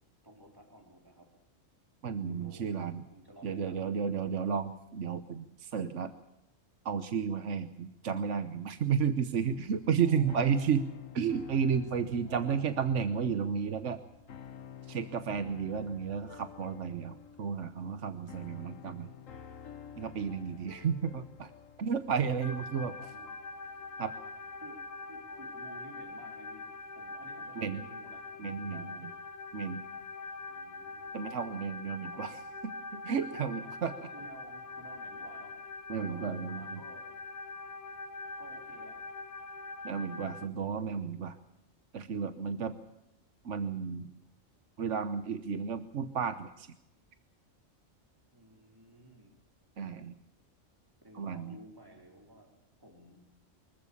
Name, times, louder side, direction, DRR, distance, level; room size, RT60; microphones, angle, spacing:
voice 1, 0.2-1.3 2.3-4.1 10.0-10.6 12.3-12.9 20.3-20.9 22.1-23.4 24.6-29.1 30.5-31.1 32.0-32.4 33.5-37.1 38.4-39.1 48.3-49.3 51.0-52.5 52.8-53.2, right 1 dB, 15° right, 2 dB, 4.0 m, -54 dB
voice 2, 2.0-3.0 3.4-6.1 6.8-10.9 11.1-14.0 14.9-19.1 20.0-21.5 21.8-22.9 24.0-24.1 27.6-27.8 28.4-28.8 29.5-29.8 31.1-32.4 32.9-33.9 35.9-36.8 39.8-41.4 41.9-42.7 43.4-44.1 44.8-46.7 49.8-50.1 51.1-51.6, right 6 dB, 65° right, 10 dB, 1.3 m, -32 dB
sound 1, 9.4-25.6, left 8 dB, 80° left, 1.4 m, -51 dB
sound 2, 22.4-40.5, left 3 dB, 60° left, 1.5 m, -43 dB
24.5 x 15.0 x 8.5 m, 0.87 s
omnidirectional pair, 1.3 m